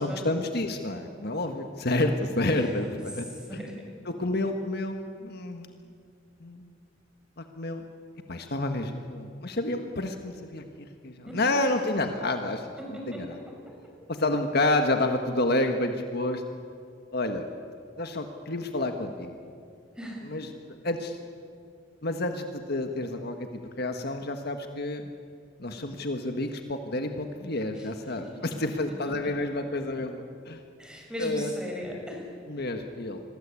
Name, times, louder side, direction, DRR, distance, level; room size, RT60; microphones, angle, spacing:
voice 1, 0.0-3.2 3.5-3.6 4.0-5.7 6.4-6.7 7.4-7.8 8.3-12.7 13.1-13.4 14.1-16.4 17.1-17.5 18.0-19.4 20.2-21.2 22.0-25.0 25.6-30.6 31.2-31.5 32.5-33.2, left 2 dB, 55° left, 6 dB, 1.6 m, -29 dB
voice 2, 3.5-3.9 11.3-11.5 12.8-13.2 20.0-20.3 27.8-27.9 30.8-32.3, equal, 5° right, 0 dB, 6.2 m, -37 dB
27.5 x 22.0 x 8.5 m, 2.3 s
head